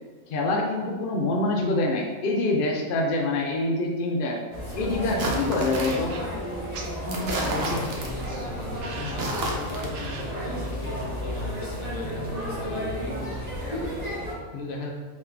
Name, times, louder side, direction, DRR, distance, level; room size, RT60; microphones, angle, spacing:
voice 1, 0.3-4.4 4.7-6.2, left 2 dB, 80° left, 0 dB, 0.4 m, -25 dB
sound 1, 4.5-14.3, equal, 25° right, 1.5 m, -32 dB
sound 2, 5.2-6.1 7.1-8.3 9.1-9.9, right 2 dB, 55° right, 0.8 m, -31 dB
sound 3, 5.7-11.4, right 3 dB, 85° right, 1.1 m, -43 dB
voice 2, 7.0-14.9, left 2 dB, 55° left, 0 dB, 0.8 m, -37 dB
3.6 x 3.1 x 3.3 m, 1.4 s
omnidirectional pair, 1.5 m